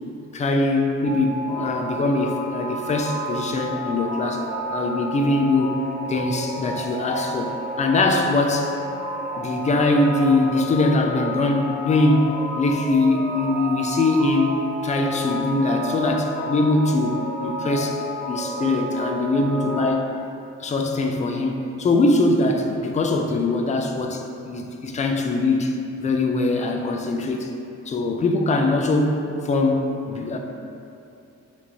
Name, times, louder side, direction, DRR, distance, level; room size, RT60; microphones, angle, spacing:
voice 1, 0.3-5.8 6.1-8.7 9.4-14.5 14.8-18.0 18.3-20.1 20.6-25.7 26.0-27.5 27.9-30.4, left 2 dB, 25° left, 3 dB, 0.3 m, -22 dB
sound 1, 1.0-19.9, equal, 80° right, 1.0 m, -31 dB
4.4 x 2.6 x 2.8 m, 2.7 s
cardioid pair, 90°, 30 cm